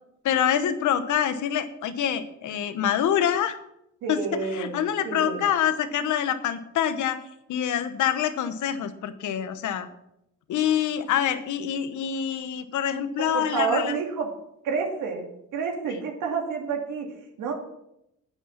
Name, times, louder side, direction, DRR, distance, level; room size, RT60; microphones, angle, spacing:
voice 1, 0.2-3.6 4.1-4.2 4.5-7.2 7.5-9.9 10.5-13.9, left 9 dB, 75° left, 11 dB, 1.1 m, -26 dB
voice 2, 4.0-5.5 13.3-14.3 14.6-17.5, right 5 dB, 85° right, 1 dB, 2.6 m, -29 dB
9.9 x 9.4 x 5.9 m, 0.83 s
cardioid pair, 90°, 30 cm